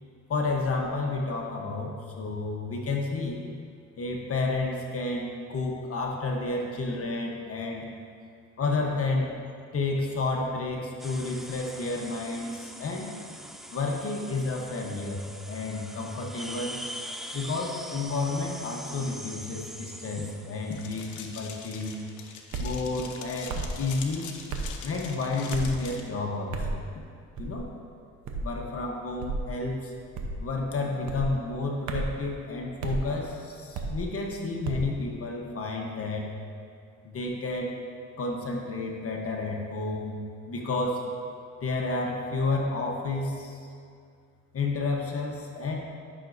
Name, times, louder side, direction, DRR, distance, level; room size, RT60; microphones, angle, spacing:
voice 1, 0.3-3.4 4.0-7.9 8.6-9.3 9.7-13.1 13.7-15.2 15.5-16.8 17.3-22.0 22.6-24.3 24.8-26.8 27.4-27.7 28.4-29.9 30.4-36.3 37.0-37.8 38.2-41.1 41.6-43.7 44.5-45.8, left 3 dB, 50° left, 0 dB, 1.1 m, -31 dB
sound 1, 11.0-22.4, equal, ahead, 0.4 m, -43 dB
sound 2, 20.7-26.0, left 6 dB, 80° left, 0.8 m, -43 dB
sound 3, 22.5-22.8 23.5-23.8 24.5-24.7 25.5-25.8 26.5-26.8 27.4-27.7 28.3-28.5 29.2-29.5 30.1-30.5 31.1-31.3 31.9-32.2 32.8-33.0 33.7-34.0 34.6-34.9, right 3 dB, 70° right, 0.9 m, -32 dB
11.5 x 5.9 x 2.6 m, 2.3 s
cardioid pair, 90°, 30 cm